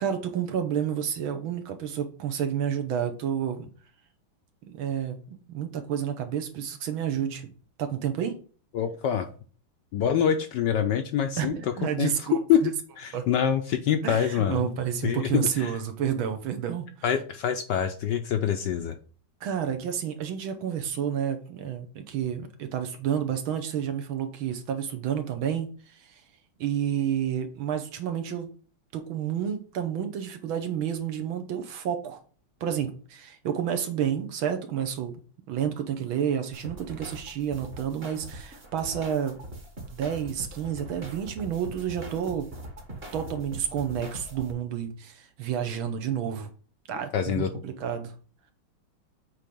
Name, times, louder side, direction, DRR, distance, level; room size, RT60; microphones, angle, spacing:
voice 1, 0.0-3.7 4.6-7.5 7.8-8.4 11.4-12.7 13.1-13.3 14.0-16.9 19.4-26.2 26.6-28.5 28.9-32.2 32.6-35.1 35.5-39.4 39.9-42.5 43.1-46.5 46.9-48.1, right 9 dB, 70° right, 7 dB, 1.8 m, -30 dB
voice 2, 8.7-9.3 9.9-11.6 12.0-12.6 13.0-14.6 15.0-15.8 17.0-19.0 47.1-47.5, left 9 dB, 70° left, 7 dB, 1.1 m, -25 dB
sound 1, 36.5-44.5, right 1 dB, 30° right, 1.5 m, -42 dB
8.1 x 3.3 x 5.3 m, 0.40 s
omnidirectional pair, 2.4 m